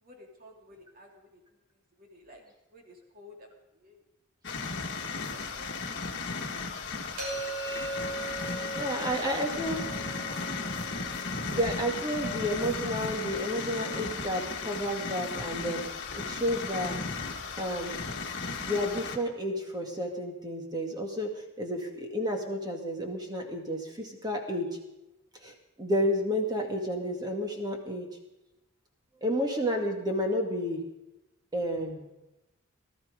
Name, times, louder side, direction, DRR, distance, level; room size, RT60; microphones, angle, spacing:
voice 1, 0.0-1.4 2.0-2.4 2.7-3.5 3.8-4.0 5.1-6.4 8.8-9.4 9.7-9.8, right 1 dB, 40° right, 1 dB, 2.7 m, -49 dB
sound 1, 4.4-19.2, left 4 dB, 55° left, 1.7 m, -35 dB
sound 2, 7.2-13.0, right 2 dB, 85° right, 6.4 m, -40 dB
voice 2, 8.7-9.8 11.5-15.8 16.1-17.0 17.6-17.9 18.6-24.7 25.4-28.1 29.2-30.8 31.5-32.1, equal, 20° right, 2 dB, 2.1 m, -31 dB
18.5 x 13.0 x 5.2 m, 0.96 s
head